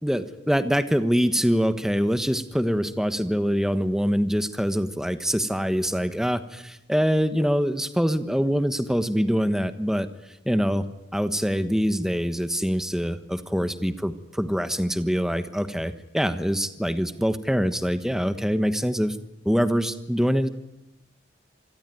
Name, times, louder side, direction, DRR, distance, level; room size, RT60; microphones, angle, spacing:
voice 1, 0.0-10.1 10.4-10.8 11.1-19.2 19.4-20.5, equal, 5° right, 11 dB, 1.2 m, -24 dB
26.5 x 20.5 x 9.3 m, 0.91 s
head